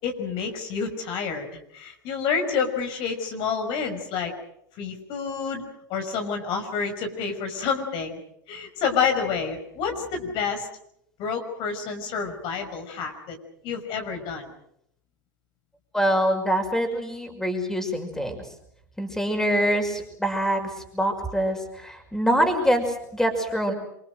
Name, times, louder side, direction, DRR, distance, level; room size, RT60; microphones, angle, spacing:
voice 1, 0.0-4.3 4.8-5.6 5.9-8.2 8.5-10.7 11.2-13.4 13.6-14.5, left 6 dB, 50° left, 5 dB, 5.7 m, -28 dB
voice 2, 15.9-18.4 19.0-23.7, equal, 5° left, 5 dB, 5.8 m, -25 dB
27.0 x 24.0 x 6.6 m, 0.74 s
hypercardioid pair, 100°, 11 cm